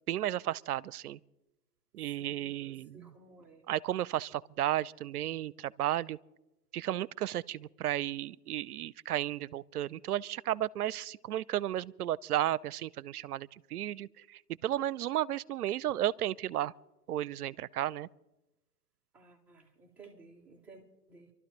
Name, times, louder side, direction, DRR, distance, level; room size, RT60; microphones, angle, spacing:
voice 1, 0.1-1.2 1.9-3.1 3.7-6.2 6.7-16.7 17.1-18.1, right 12 dB, 70° right, 0.6 m, -33 dB
voice 2, 2.2-3.6 19.1-21.3, right 3 dB, 5° right, 0.4 m, -56 dB
29.5 x 12.0 x 3.0 m
figure-of-eight pair, 115°, 47 cm